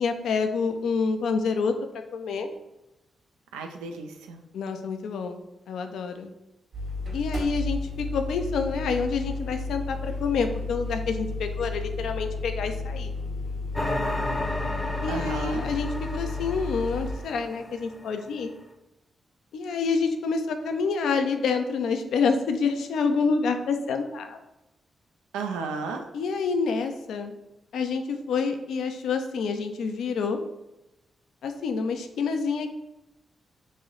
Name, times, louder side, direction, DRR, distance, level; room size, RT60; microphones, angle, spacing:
voice 1, 0.0-1.7 2.1-2.5 4.5-6.3 7.1-13.1 15.0-18.5 19.5-24.4 26.1-27.3 27.7-30.4 31.4-32.7, left 5 dB, 75° left, 6 dB, 0.4 m, -27 dB
voice 2, 3.5-4.4 15.1-15.6 25.3-26.1, right 4 dB, 90° right, 4 dB, 0.3 m, -33 dB
sound 1, 6.7-17.1, left 3 dB, 70° right, 1.4 m, -32 dB
sound 2, 13.7-18.2, left 1 dB, 15° left, 0.6 m, -33 dB
3.1 x 2.7 x 3.7 m, 0.94 s
hypercardioid pair, 40°, 0 cm